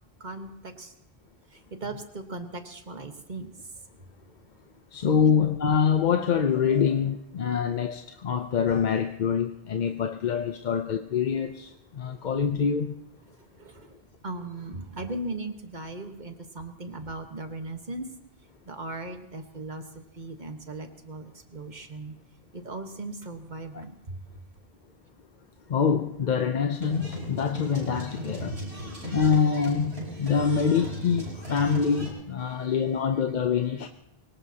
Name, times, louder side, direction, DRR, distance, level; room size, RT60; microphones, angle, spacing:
voice 1, 0.2-0.9 1.8-3.5 13.6-14.0 14.2-18.1 18.7-19.8 20.2-22.1 22.5-24.2 28.8-29.1 32.5-32.7, right 2 dB, 50° right, 1.4 m, -38 dB
voice 2, 4.9-13.0 23.7-23.8 25.7-28.6 29.1-33.9, left 6 dB, 55° left, 0.7 m, -25 dB
sound 1, 26.8-32.1, right 1 dB, 85° right, 5.5 m, -36 dB
24.0 x 18.0 x 2.8 m
omnidirectional pair, 1.0 m